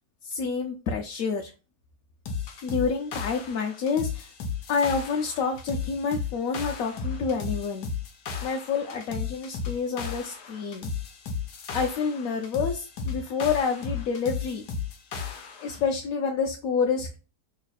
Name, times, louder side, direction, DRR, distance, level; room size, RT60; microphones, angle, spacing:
voice 1, 0.2-1.5 2.6-4.3 4.7-7.9 8.4-10.9 11.7-14.7 15.6-17.2, left 5 dB, 70° left, 2 dB, 0.9 m, -28 dB
sound 1, 2.3-15.8, left 5 dB, 90° left, 1.3 m, -34 dB
3.2 x 2.3 x 4.0 m, 0.31 s
omnidirectional pair, 1.7 m